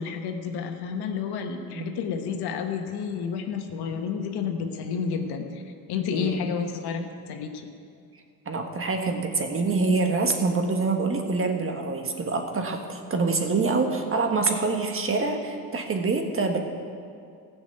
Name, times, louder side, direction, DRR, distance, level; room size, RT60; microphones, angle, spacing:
voice 1, 0.0-5.6 5.9-7.7, left 6 dB, 70° left, 5 dB, 1.4 m, -30 dB
voice 2, 8.4-16.6, right 3 dB, 30° right, 4 dB, 1.6 m, -26 dB
15.0 x 6.2 x 8.0 m, 2.3 s
supercardioid pair, 90°, 40 cm